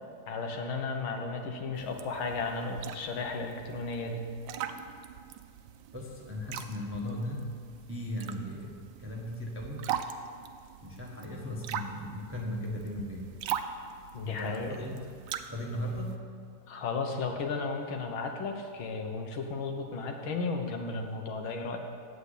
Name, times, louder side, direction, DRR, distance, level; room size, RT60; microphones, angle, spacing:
voice 1, 0.3-4.2 14.1-14.7 16.7-21.8, left 4 dB, 80° left, 3 dB, 1.9 m, -34 dB
sound 1, 1.7-16.2, right 9 dB, 75° right, 1.2 m, -41 dB
voice 2, 5.9-7.5 7.9-9.9 10.8-13.3 14.2-15.1 15.5-16.3, left 1 dB, 10° right, -1 dB, 0.7 m, -37 dB
8.1 x 8.1 x 8.3 m, 2.2 s
omnidirectional pair, 2.2 m